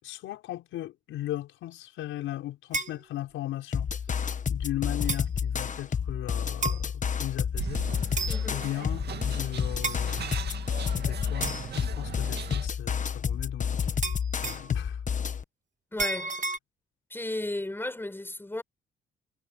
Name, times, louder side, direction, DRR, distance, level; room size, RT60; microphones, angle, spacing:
voice 1, 0.0-3.9 4.5-7.9 8.4-10.4 10.9-13.9 14.4-15.0, left 14 dB, 90° left, 6.1 m, -37 dB
Röhren fallen, 2.7-3.0 4.1-4.2 5.1-5.3 6.6-6.8 8.1-8.5 9.8-10.0 11.4-11.7 14.0-14.7 16.0-16.6, right 3 dB, 40° right, 2.0 m, -31 dB
sound 1, 3.7-15.4, left 7 dB, 40° left, 1.2 m, -30 dB
sound 2, 7.6-12.7, right 8 dB, 55° right, 2.3 m, -39 dB
voice 2, 8.3-8.7 15.9-16.4 17.1-18.6, left 1 dB, 10° left, 6.2 m, -34 dB
cardioid pair, 90°, 20 cm